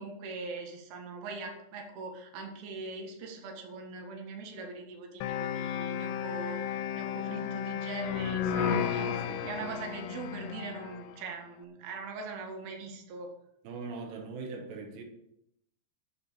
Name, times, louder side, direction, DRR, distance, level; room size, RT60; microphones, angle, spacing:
voice 1, 0.0-9.1 9.5-13.3, right 3 dB, 65° right, 2 dB, 3.5 m, -41 dB
sound 1, 5.2-11.1, left 8 dB, 90° left, 2.8 m, -33 dB
voice 2, 8.5-9.7 13.7-15.0, right 4 dB, 90° right, 2 dB, 3.6 m, -41 dB
8.5 x 8.2 x 7.1 m, 0.79 s
omnidirectional pair, 4.8 m